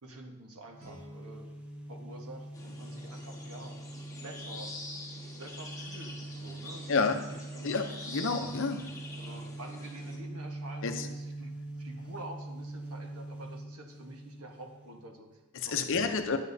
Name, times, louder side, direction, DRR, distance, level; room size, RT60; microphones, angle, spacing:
voice 1, 0.0-1.5 1.9-3.8 4.2-4.7 5.4-7.8 9.2-15.4 15.7-16.4, right 1 dB, 75° right, 2 dB, 1.3 m, -48 dB
sound 1, 0.7-15.2, right 2 dB, 5° right, 0.7 m, -43 dB
Guitar, 0.8-3.5, left 1 dB, 40° right, 2.4 m, -58 dB
sound 2, 2.5-10.2, left 2 dB, 15° left, 1.4 m, -46 dB
voice 2, 7.6-8.8 10.8-11.1 15.5-16.4, left 4 dB, 60° left, 6 dB, 0.7 m, -29 dB
9.8 x 8.7 x 2.7 m, 1.0 s
head